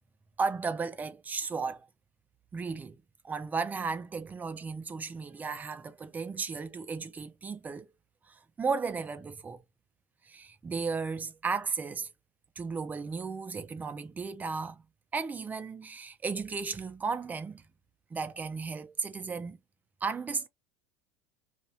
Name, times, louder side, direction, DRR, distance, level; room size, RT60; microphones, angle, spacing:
voice 1, 0.4-1.9 2.5-7.9 8.3-9.6 10.2-12.1 12.6-14.8 15.1-17.6 18.1-19.6 20.0-20.5, right 4 dB, 20° right, 0.6 m, -35 dB
2.7 x 2.6 x 3.1 m
supercardioid pair, 115°, 8 cm